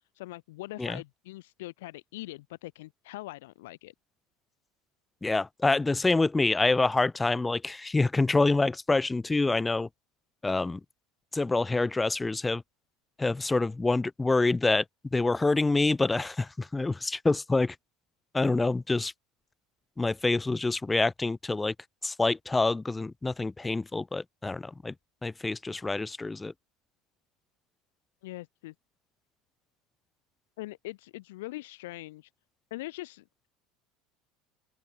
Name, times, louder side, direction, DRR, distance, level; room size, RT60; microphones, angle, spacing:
voice 1, 0.1-3.9 28.2-28.7 30.6-32.3 32.7-33.2, left 19 dB, 90° left, 7.0 m, -42 dB
voice 2, 5.2-9.9 10.4-10.8 11.3-12.6 13.2-14.8 15.1-17.8 18.3-19.1 20.0-21.7 22.0-24.9 25.2-26.5, left 3 dB, 10° left, 2.6 m, -26 dB
open air
supercardioid pair, 125°, 0 cm